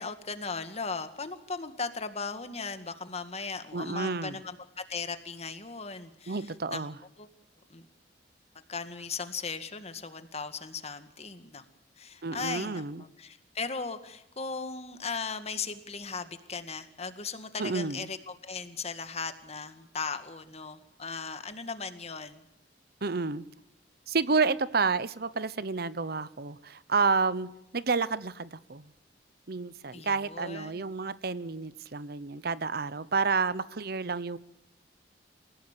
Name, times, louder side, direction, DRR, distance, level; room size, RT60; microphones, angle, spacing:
voice 1, 0.0-6.4 6.7-6.9 7.2-7.3 7.7-7.9 8.7-11.6 12.0-22.5 29.9-30.8, left 4 dB, 35° left, 9 dB, 2.0 m, -37 dB
voice 2, 3.7-4.4 6.3-7.0 12.2-13.0 17.6-18.0 23.0-23.4 24.1-28.8 29.5-34.4, right 4 dB, 60° right, 17 dB, 0.9 m, -30 dB
28.5 x 17.0 x 6.8 m, 0.83 s
head